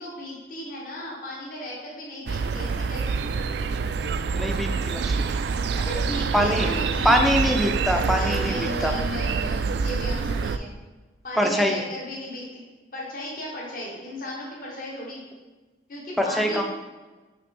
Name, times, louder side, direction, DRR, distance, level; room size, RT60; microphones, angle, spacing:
voice 1, 0.0-3.4 5.7-7.2 8.0-10.7 11.2-12.6 12.9-15.2 15.9-16.6, left 1 dB, 45° left, -4 dB, 1.5 m, -35 dB
sound 1, 2.3-10.6, right 5 dB, 60° right, 0.3 m, -26 dB
voice 2, 4.3-5.2 6.3-6.7 7.0-8.9 11.4-11.8 16.2-16.6, equal, ahead, 2 dB, 0.5 m, -23 dB
5.7 x 3.4 x 5.3 m, 1.3 s
head